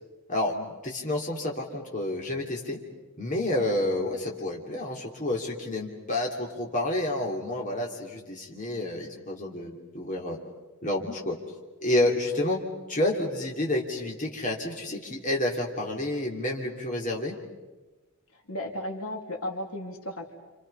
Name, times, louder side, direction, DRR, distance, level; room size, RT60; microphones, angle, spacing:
voice 1, 0.3-2.8 3.2-10.4 10.8-11.4 11.8-12.6 12.9-17.4, left 1 dB, 35° left, -1 dB, 3.1 m, -29 dB
voice 2, 18.5-20.3, left 1 dB, 75° left, 1 dB, 3.2 m, -34 dB
29.5 x 27.5 x 5.6 m, 1.2 s
head